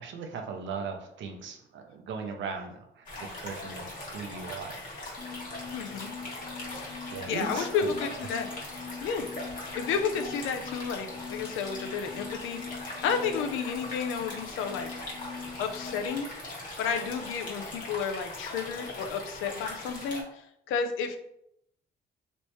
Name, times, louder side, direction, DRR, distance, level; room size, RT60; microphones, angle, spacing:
voice 1, 0.0-4.8 7.1-7.9, right 5 dB, 70° right, 4 dB, 0.7 m, -38 dB
sound 1, 3.1-20.2, left 2 dB, 45° left, 1.4 m, -40 dB
sound 2, 5.2-16.2, left 6 dB, 20° left, 0.3 m, -44 dB
voice 2, 5.7-6.1 6.7-8.5 9.0-9.3 9.7-15.0 15.6-16.3 16.8-21.2, left 6 dB, 85° left, 6 dB, 0.5 m, -32 dB
3.1 x 3.1 x 3.1 m, 0.79 s
cardioid pair, 90°, 20 cm